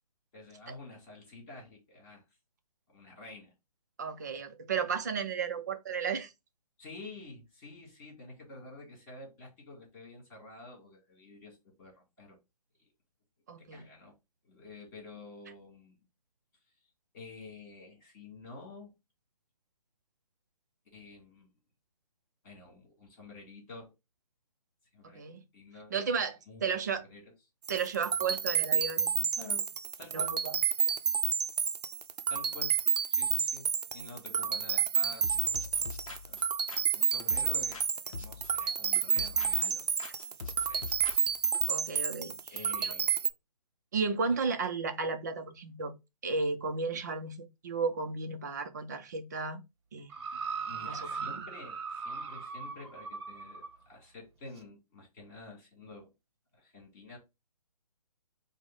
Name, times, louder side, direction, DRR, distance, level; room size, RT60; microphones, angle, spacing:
voice 1, 0.3-2.2 2.9-3.5 4.3-4.4 6.8-12.4 12.8-12.9 13.6-14.1 14.4-16.0 17.1-18.9 20.9-21.5 22.4-23.9 24.9-25.3 25.5-26.0 26.5-27.3 29.4-29.7 30.0-30.4 32.3-32.8 33.1-33.7 33.9-35.9 36.3-36.5 36.8-39.9 40.4-40.9 42.5-43.3 50.7-56.1 56.5-57.2, left 2 dB, 25° left, 2.1 m, -49 dB
voice 2, 4.0-6.3 13.5-13.9 25.2-25.4 25.9-27.0 27.7-29.3 30.1-30.5 41.7-42.4 42.8-42.9 43.9-45.9 46.2-49.6 49.9-50.1 50.8-51.4, right 5 dB, 30° right, 0.5 m, -34 dB
sound 1, 27.6-43.3, right 7 dB, 80° right, 0.5 m, -30 dB
sound 2, 35.2-37.9 38.1-39.7 40.0-41.6, left 5 dB, 60° left, 0.7 m, -44 dB
sound 3, 50.1-53.8 54.6-54.7, right 5 dB, 45° right, 0.9 m, -39 dB
4.9 x 2.1 x 3.7 m
hypercardioid pair, 165°, 20 cm